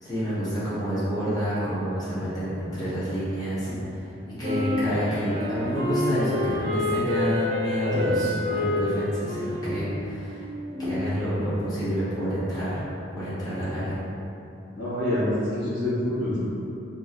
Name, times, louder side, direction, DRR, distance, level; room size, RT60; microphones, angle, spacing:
voice 1, 0.0-4.1 4.4-10.5 10.8-12.8 13.2-14.0, equal, 20° left, -12 dB, 1.2 m, -28 dB
Wind instrument woodwind instrument, 4.4-11.2, left 2 dB, 45° right, 0.7 m, -29 dB
voice 2, 14.8-16.5, left 1 dB, 75° left, -9 dB, 1.4 m, -26 dB
4.5 x 2.1 x 2.9 m, 2.7 s
head